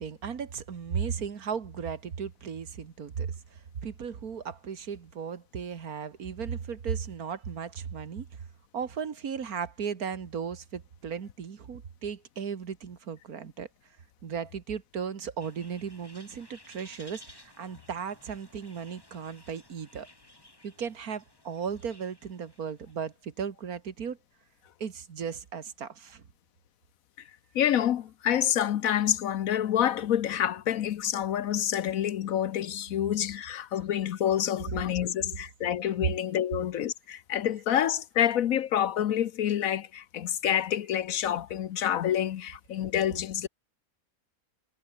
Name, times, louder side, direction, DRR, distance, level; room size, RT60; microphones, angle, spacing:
voice 1, 0.0-8.3 8.7-13.7 14.2-20.1 20.6-24.2 24.8-26.2, right 7 dB, 90° right, 2.1 m, -36 dB
sound 1, 15.4-23.2, left 1 dB, 15° left, 2.6 m, -56 dB
voice 2, 27.5-43.5, left 10 dB, 70° left, 1.2 m, -28 dB
omnidirectional pair, 1.5 m